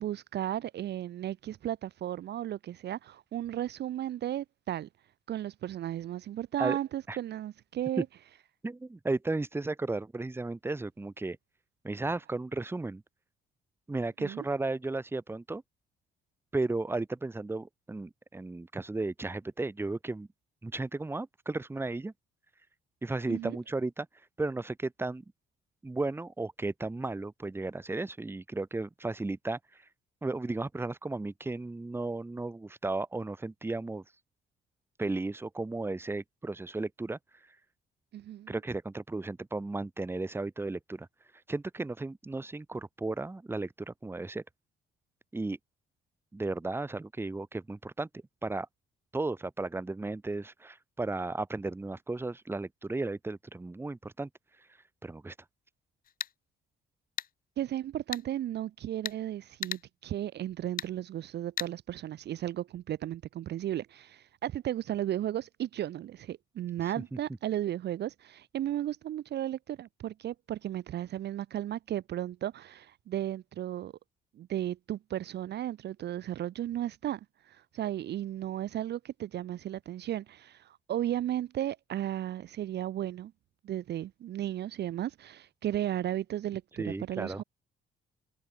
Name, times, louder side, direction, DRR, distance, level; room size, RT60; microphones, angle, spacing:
voice 1, 0.0-4.9 5.3-8.1 14.2-14.4 23.3-23.6 38.1-38.5 57.6-73.9 74.4-77.2 77.5-83.3 83.6-87.4, right 12 dB, 60° right, 0.5 m, -35 dB
voice 2, 8.6-11.4 11.8-13.0 13.9-15.6 16.5-20.3 20.6-22.1 23.0-24.1 24.4-25.2 25.8-29.8 30.2-34.0 35.0-37.2 38.5-41.1 41.5-44.4 45.3-45.6 46.3-48.1 48.4-48.7 49.1-54.3 55.0-55.3 67.0-67.2 86.8-87.4, right 2 dB, 10° right, 0.8 m, -34 dB
sound 1, 56.0-56.3 57.2-57.3 58.1-58.2 59.0-59.2 59.6-59.8 60.8-60.9 61.6-61.7, left 9 dB, 45° left, 0.6 m, -35 dB
cardioid pair, 90°, 20 cm